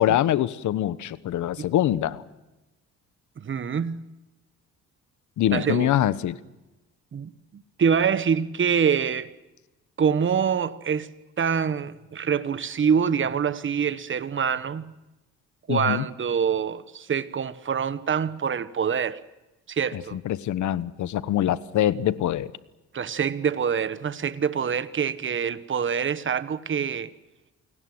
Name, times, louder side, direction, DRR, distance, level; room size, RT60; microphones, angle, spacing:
voice 1, 0.0-2.2 5.4-6.4 15.7-16.0 19.9-22.5, left 12 dB, 75° left, 1.2 m, -24 dB
voice 2, 3.4-4.0 5.5-5.9 7.1-9.3 10.0-14.9 15.7-19.2 19.7-20.2 22.9-27.1, right 7 dB, 40° right, 1.3 m, -25 dB
29.0 x 18.5 x 7.9 m
cardioid pair, 90°, 30 cm